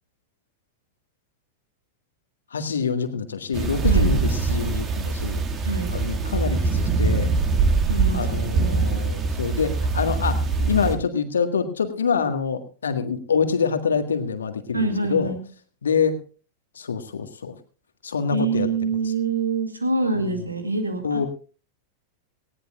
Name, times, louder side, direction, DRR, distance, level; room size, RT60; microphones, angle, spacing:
voice 1, 2.5-5.4 5.9-7.3 8.1-15.3 15.8-16.2 16.7-17.5 18.0-18.7 20.1-20.4 21.0-21.3, left 6 dB, 70° left, 8 dB, 1.6 m, -26 dB
sound 1, 3.5-10.9, right 4 dB, 25° right, 2.0 m, -23 dB
voice 2, 5.6-5.9 7.9-8.3 8.6-9.0 14.7-15.4 18.3-21.3, right 3 dB, 80° right, 6 dB, 2.3 m, -25 dB
19.0 x 17.0 x 2.4 m, 0.37 s
figure-of-eight pair, 90°, 0 cm